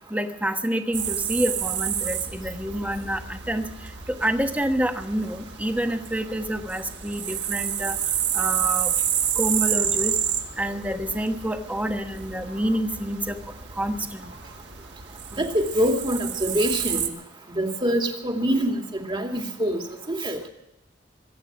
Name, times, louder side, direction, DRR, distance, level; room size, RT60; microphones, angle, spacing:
voice 1, 0.1-3.7 4.1-8.0 8.3-8.9 9.4-10.2 10.6-13.4 13.8-14.3, right 1 dB, 10° right, 6 dB, 1.2 m, -27 dB
sound 1, 0.9-17.1, right 9 dB, 75° right, 1.7 m, -30 dB
voice 2, 15.3-17.1 17.5-19.8 20.1-20.5, equal, 25° right, 3 dB, 2.3 m, -25 dB
24.0 x 8.9 x 6.1 m, 0.86 s
head